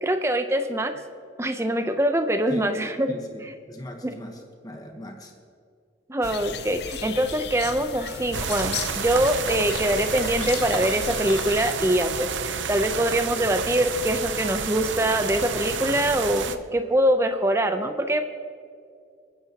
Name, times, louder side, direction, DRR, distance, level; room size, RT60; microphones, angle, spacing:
voice 1, 0.0-0.9 1.4-3.1 6.1-18.2, right 1 dB, 15° right, 8 dB, 0.6 m, -24 dB
voice 2, 3.1-5.3, equal, 20° left, 2 dB, 1.1 m, -40 dB
sound 1, 6.2-11.7, left 7 dB, 60° left, 0.6 m, -36 dB
sound 2, 8.3-16.6, right 6 dB, 85° right, 0.6 m, -30 dB
26.5 x 9.8 x 2.9 m, 2.3 s
head